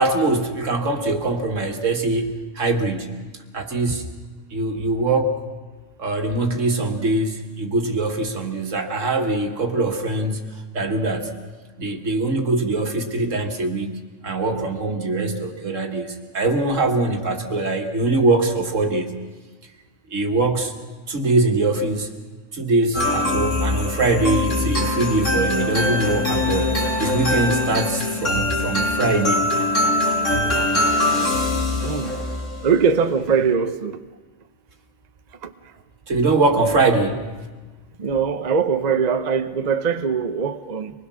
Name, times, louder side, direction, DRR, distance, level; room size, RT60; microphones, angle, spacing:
voice 1, 0.0-3.2 3.5-4.1 4.5-5.4 6.0-10.4 10.7-11.4 11.8-19.2 20.1-20.8 21.1-22.1 22.5-29.5 36.1-37.4, right 2 dB, 85° right, 2.1 m, -22 dB
sound 1, 22.9-32.6, left 2 dB, 80° left, 3.8 m, -22 dB
voice 2, 31.8-32.2 32.6-33.9 35.4-35.5 38.0-40.9, right 6 dB, 40° right, 0.8 m, -21 dB
24.5 x 20.0 x 6.3 m
omnidirectional pair, 1.3 m